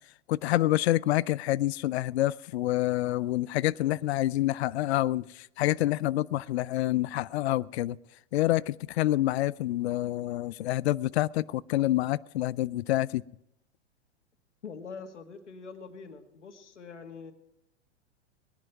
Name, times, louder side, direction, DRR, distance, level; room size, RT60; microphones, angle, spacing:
voice 1, 0.3-8.0 8.3-13.2, left 15 dB, 65° left, 0.5 m, -27 dB
voice 2, 14.6-17.3, left 5 dB, 85° left, 2.1 m, -44 dB
20.0 x 11.0 x 4.7 m
hypercardioid pair, 110°, 35 cm